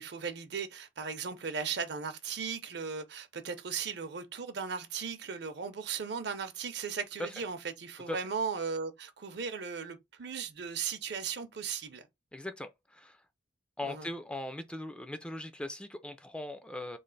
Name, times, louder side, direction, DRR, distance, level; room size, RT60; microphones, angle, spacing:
voice 1, 0.0-12.0 13.8-14.1, right 6 dB, 60° right, 0.6 m, -37 dB
voice 2, 12.3-13.2 13.8-17.0, left 1 dB, 5° left, 0.3 m, -39 dB
3.2 x 2.4 x 3.9 m
head